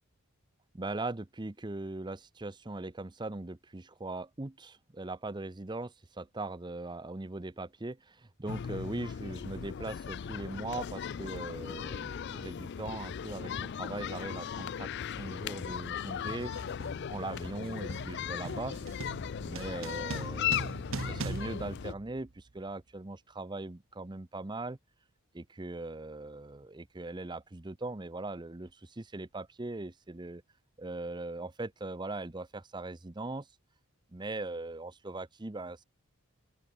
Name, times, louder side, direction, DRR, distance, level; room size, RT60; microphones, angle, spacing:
voice 1, 0.7-14.9 15.2-16.5 17.1-18.8 19.4-24.8 25.3-30.4 30.8-33.5 34.1-35.8, right 2 dB, 20° right, 0.6 m, -40 dB
sound 1, 8.5-21.9, left 8 dB, 50° left, 0.4 m, -37 dB
sound 2, 12.4-12.6 13.5-13.8 14.0-22.6, right 3 dB, 65° right, 1.0 m, -43 dB
open air
head